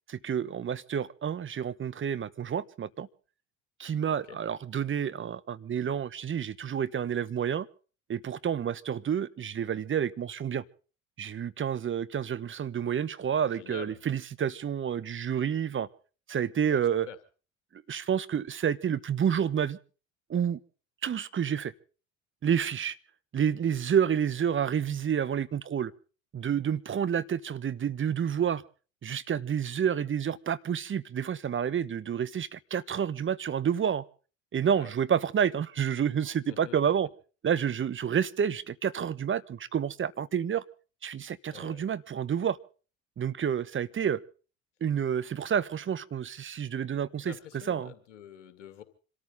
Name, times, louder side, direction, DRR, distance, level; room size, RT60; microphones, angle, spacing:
voice 1, 0.1-3.1 3.8-7.7 8.1-10.6 11.2-15.9 16.3-17.1 17.9-19.8 20.3-20.6 21.0-21.7 22.4-22.9 23.3-25.9 26.3-28.6 29.0-34.0 34.5-37.1 37.4-40.6 41.0-42.6 43.2-44.2 44.8-47.3 47.7-47.9, right 8 dB, 35° right, 1.1 m, -29 dB
voice 2, 4.0-4.4 13.4-14.0 16.7-17.2 34.7-34.9 36.5-36.8 41.5-41.9 47.2-48.8, left 11 dB, 85° left, 2.2 m, -47 dB
26.5 x 14.0 x 3.9 m
hypercardioid pair, 65°, 36 cm